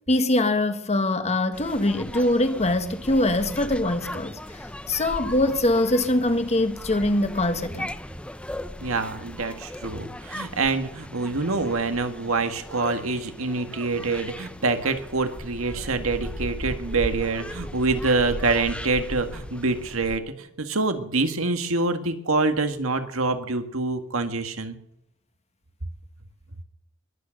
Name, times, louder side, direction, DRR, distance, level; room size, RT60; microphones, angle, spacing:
voice 1, 0.1-4.4 4.9-7.9, left 1 dB, 30° left, 1.5 m, -23 dB
sound 1, 1.5-20.2, left 1 dB, 5° left, 0.7 m, -37 dB
voice 2, 8.8-24.8, right 3 dB, 85° right, 1.9 m, -26 dB
21.0 x 8.9 x 6.5 m
head